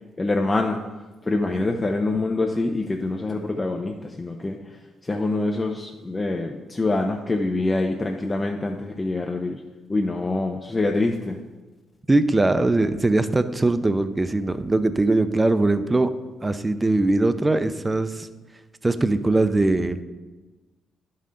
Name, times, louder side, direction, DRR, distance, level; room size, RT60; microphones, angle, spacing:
voice 1, 0.2-0.8 1.3-4.6 5.0-9.6 9.9-11.4, left 2 dB, 20° left, 2 dB, 0.6 m, -25 dB
voice 2, 12.1-16.1 16.4-18.3 18.8-20.0, right 2 dB, 15° right, 12 dB, 0.5 m, -21 dB
10.5 x 5.6 x 3.8 m, 1.2 s
cardioid pair, 90°, 0 cm